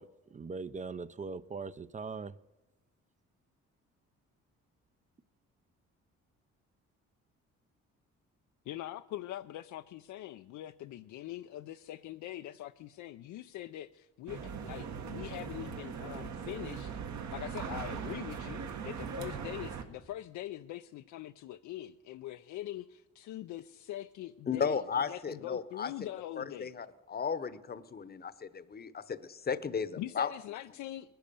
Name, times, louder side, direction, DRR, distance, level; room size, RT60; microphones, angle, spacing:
voice 1, 0.0-2.3, right 4 dB, 25° right, 0.5 m, -41 dB
voice 2, 8.7-17.0 17.3-24.8 25.1-26.7 30.0-31.1, left 13 dB, 75° left, 0.5 m, -43 dB
sound 1, 14.3-19.8, right 6 dB, 70° right, 1.7 m, -40 dB
voice 3, 24.5-25.9 26.4-30.3, left 6 dB, 30° left, 0.9 m, -35 dB
20.0 x 10.5 x 6.8 m
cardioid pair, 90°, 30 cm